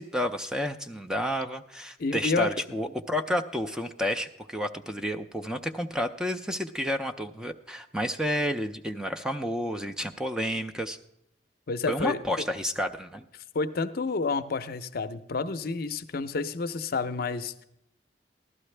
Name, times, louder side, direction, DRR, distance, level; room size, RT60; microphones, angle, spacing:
voice 1, 0.0-11.0 11.9-13.2, equal, 5° right, 6 dB, 0.4 m, -30 dB
voice 2, 2.0-2.5 11.7-12.2 13.5-17.6, left 4 dB, 60° left, 11 dB, 0.6 m, -29 dB
15.0 x 12.0 x 3.3 m, 0.81 s
head